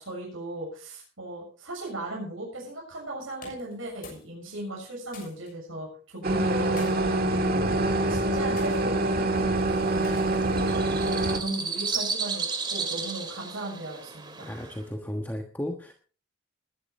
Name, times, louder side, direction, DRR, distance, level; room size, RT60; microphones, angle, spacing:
voice 1, 0.0-6.9 7.3-12.5 12.7-14.5, right 1 dB, 90° right, -3 dB, 6.8 m, -37 dB
sound 1, 3.4-4.3 4.6-5.5 6.4-6.9 7.7-8.0 8.6-8.8 10.0-10.5, left 4 dB, 45° left, 6.5 m, -48 dB
sound 2, 6.2-11.4, right 2 dB, 50° right, 1.7 m, -25 dB
sound 3, 9.6-14.8, right 5 dB, 25° right, 2.2 m, -34 dB
voice 2, 14.4-15.9, equal, 10° left, 2 dB, 1.3 m, -34 dB
20.0 x 11.5 x 3.3 m, 0.39 s
head